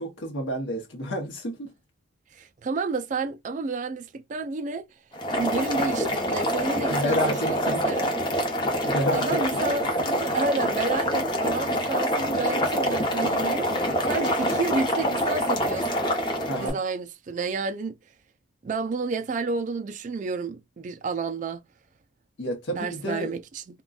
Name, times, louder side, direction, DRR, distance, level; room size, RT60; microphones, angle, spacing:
voice 1, 0.0-1.7 6.9-7.8 8.9-9.4 16.5-16.8 22.4-23.3, equal, 70° left, 0.9 m, -29 dB
voice 2, 2.3-4.9 5.4-8.2 9.1-15.9 16.6-17.9 18.6-21.6 22.7-23.6, right 4 dB, 40° right, 0.3 m, -30 dB
Boiling, 5.1-16.7, equal, 25° left, 0.8 m, -26 dB
3.7 x 2.2 x 2.3 m
head